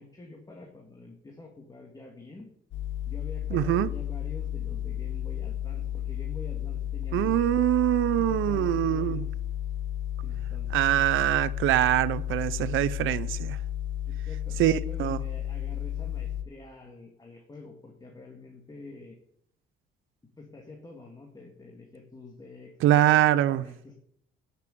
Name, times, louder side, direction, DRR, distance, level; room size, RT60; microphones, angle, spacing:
voice 1, 0.0-2.5 3.1-7.6 8.2-9.3 10.2-11.0 14.1-19.2 20.4-23.9, left 3 dB, 20° left, 2.2 m, -47 dB
sound 1, 2.7-16.4, left 11 dB, 70° left, 1.3 m, -33 dB
voice 2, 3.5-3.9 7.1-9.2 10.7-13.6 14.6-15.2 22.8-23.6, right 13 dB, 85° right, 0.6 m, -24 dB
10.0 x 6.8 x 8.4 m
cardioid pair, 90°, 20 cm